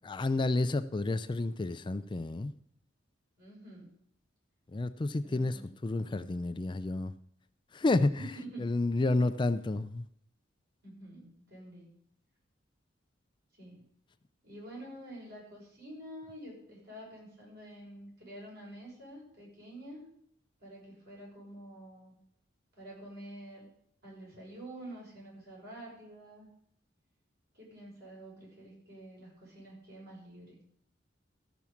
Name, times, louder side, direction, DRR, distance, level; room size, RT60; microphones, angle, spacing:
voice 1, 0.0-2.5 4.7-7.1 7.7-8.2 8.6-10.1, left 2 dB, 25° left, 11 dB, 0.4 m, -30 dB
voice 2, 3.4-3.9 5.2-5.7 8.2-8.7 10.8-11.9 13.6-13.8 14.4-20.1 20.6-22.1 22.8-23.7 24.0-26.5 27.5-30.6, right 1 dB, 55° right, -4 dB, 6.3 m, -48 dB
13.5 x 6.1 x 7.1 m, 0.70 s
head